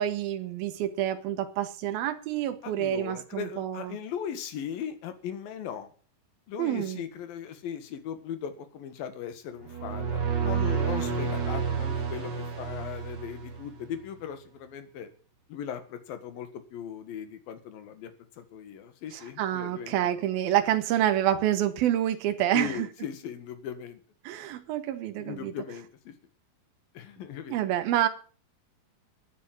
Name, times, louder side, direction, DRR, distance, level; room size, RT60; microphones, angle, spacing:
voice 1, 0.0-3.9 6.6-7.0 19.1-22.9 24.2-25.5 27.5-28.1, right 12 dB, 80° right, 3.1 m, -28 dB
voice 2, 2.6-5.9 6.5-15.1 15.5-18.1 18.4-19.9 22.5-24.0 25.2-26.1 27.0-27.5, left 8 dB, 75° left, 3.5 m, -38 dB
sound 1, 9.6-14.0, right 6 dB, 30° right, 3.1 m, -30 dB
14.5 x 9.6 x 7.6 m
omnidirectional pair, 4.2 m